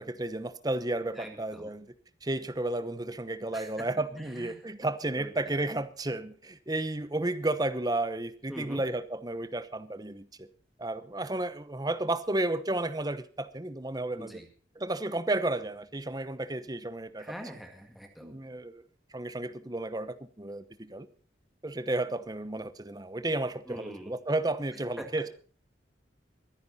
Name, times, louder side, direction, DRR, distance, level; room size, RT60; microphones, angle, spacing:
voice 1, 0.0-1.9 2.2-10.5 10.8-14.4 14.8-17.3 18.2-18.8 19.1-21.1 21.6-25.3, right 2 dB, 20° right, 13 dB, 0.9 m, -32 dB
voice 2, 1.2-1.7 3.5-3.7 4.3-4.6 5.2-5.3 8.5-8.8 14.2-14.5 17.2-18.3 23.7-24.1 25.0-25.1, equal, ahead, 3 dB, 2.0 m, -43 dB
22.5 x 10.5 x 4.2 m, 0.42 s
head